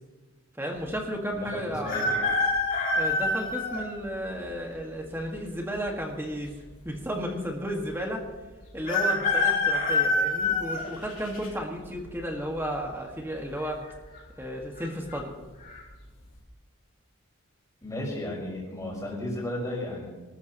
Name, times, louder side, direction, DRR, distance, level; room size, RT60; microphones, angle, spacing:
voice 1, 0.6-2.1 2.9-6.5 6.9-8.3 8.7-13.8 14.4-15.3, equal, 10° right, 1 dB, 1.7 m, -33 dB
voice 2, 1.3-2.3 17.8-20.1, left 1 dB, 15° left, -4 dB, 5.4 m, -34 dB
sound 1, 1.8-3.9 4.5-4.6 5.7-6.4 6.7-6.8 6.9-7.0 8.9-11.5 12.0-12.4 13.5-13.9 14.1-14.2 14.8-15.2 15.6-15.8, left 3 dB, 40° left, 3.1 m, -26 dB
25.0 x 13.0 x 3.0 m, 1.2 s
head